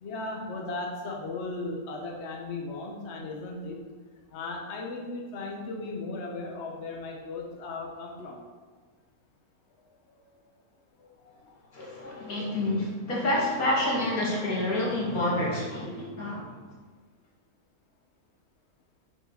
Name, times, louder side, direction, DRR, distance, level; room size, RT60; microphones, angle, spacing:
voice 1, 0.0-3.8 4.3-8.4 10.1-10.2 11.2-11.5 11.9-12.0 12.3-12.5, left 3 dB, 55° left, 0 dB, 1.2 m, -36 dB
voice 2, 11.7-16.5, left 1 dB, 90° left, -4 dB, 2.4 m, -28 dB
7.1 x 4.9 x 5.6 m, 1.4 s
omnidirectional pair, 1.5 m